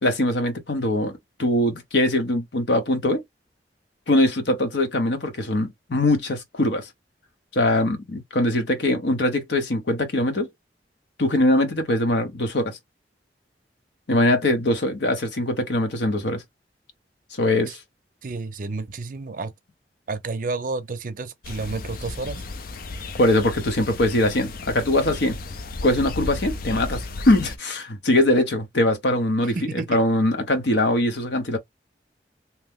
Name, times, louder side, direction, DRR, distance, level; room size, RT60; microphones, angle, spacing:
voice 1, 0.0-3.2 4.1-6.9 7.5-10.5 11.2-12.8 14.1-16.4 17.4-17.8 23.2-25.4 25.8-29.6 29.9-31.6, left 1 dB, 75° left, 0.9 m, -22 dB
voice 2, 18.2-19.5 20.1-22.4 29.5-30.0, right 3 dB, 50° right, 0.5 m, -30 dB
sound 1, 21.4-27.6, left 3 dB, 55° left, 0.4 m, -34 dB
2.9 x 2.0 x 3.4 m
head